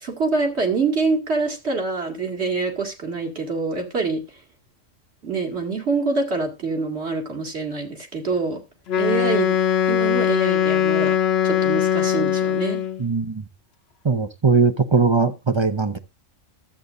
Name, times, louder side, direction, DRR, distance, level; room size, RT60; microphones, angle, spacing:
voice 1, 0.0-4.2 5.2-8.6 9.0-9.6 9.9-11.2 11.4-12.8, right 4 dB, 55° right, 2.5 m, -25 dB
Wind instrument woodwind instrument, 8.9-13.0, left 9 dB, 55° left, 1.0 m, -21 dB
voice 2, 13.0-13.5 14.0-16.0, right 4 dB, 30° right, 0.6 m, -20 dB
13.0 x 8.2 x 2.5 m
omnidirectional pair, 1.4 m